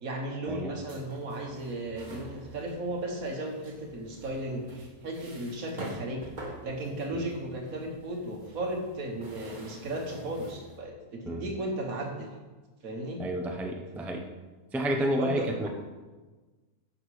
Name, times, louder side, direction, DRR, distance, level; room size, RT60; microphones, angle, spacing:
voice 1, 0.0-6.3 6.6-12.3 12.8-13.2 15.2-15.7, right 1 dB, 70° right, 2 dB, 1.9 m, -35 dB
sound 1, 0.8-10.8, right 2 dB, 35° right, 1.6 m, -48 dB
voice 2, 13.2-14.3 14.7-15.7, equal, ahead, 3 dB, 0.6 m, -30 dB
11.0 x 6.6 x 5.0 m, 1.3 s
omnidirectional pair, 1.5 m